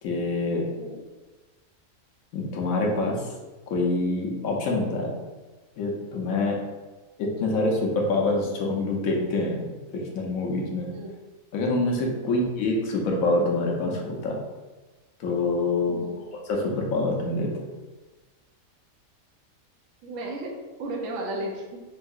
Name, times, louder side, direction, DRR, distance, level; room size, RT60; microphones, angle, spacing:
voice 1, 0.0-0.6 2.3-3.2 3.7-5.1 5.8-6.6 7.2-9.7 10.1-10.9 11.5-14.4 15.2-16.0 16.5-17.5, left 2 dB, 80° left, -1 dB, 1.0 m, -25 dB
voice 2, 12.2-12.5 15.8-16.2 20.0-21.8, right 1 dB, 70° right, 0 dB, 1.0 m, -35 dB
3.6 x 2.6 x 2.4 m, 1.2 s
omnidirectional pair, 1.5 m